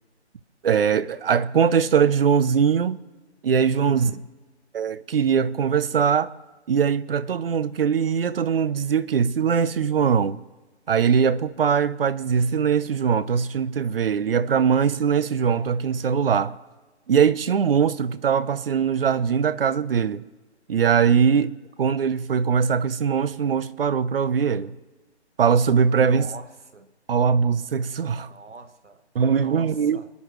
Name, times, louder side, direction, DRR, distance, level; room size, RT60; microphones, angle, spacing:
voice 1, 0.6-3.0 3.4-4.1 4.7-6.3 6.7-10.4 10.9-16.6 17.1-20.2 20.7-21.5 21.8-24.7 25.4-26.3 27.1-28.3 29.1-30.0, right 7 dB, 55° right, 0.7 m, -21 dB
voice 2, 3.8-4.3 26.0-26.9 28.3-29.0 29.3-30.1, right 3 dB, 90° right, 1.3 m, -39 dB
29.0 x 10.0 x 3.2 m
figure-of-eight pair, 150°, 34 cm